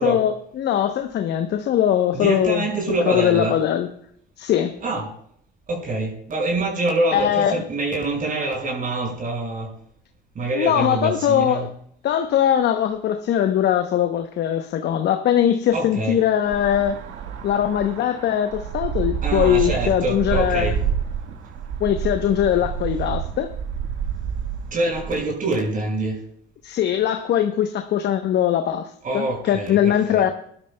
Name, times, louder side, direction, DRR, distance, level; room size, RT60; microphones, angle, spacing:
voice 1, 0.0-2.6 3.1-3.9 4.4-4.7 7.1-7.6 10.5-11.7 12.0-17.0 17.4-20.7 21.8-23.5 26.6-30.3, left 10 dB, 55° left, 7 dB, 0.9 m, -21 dB
voice 2, 2.1-3.6 4.8-5.1 5.7-9.7 10.3-11.7 15.7-16.2 19.2-20.8 24.7-26.2 29.0-30.3, right 2 dB, 40° right, 0 dB, 5.8 m, -25 dB
sound 1, 16.4-25.3, right 8 dB, 65° right, 1.6 m, -28 dB
19.5 x 12.0 x 2.2 m, 0.67 s
supercardioid pair, 90°, 21 cm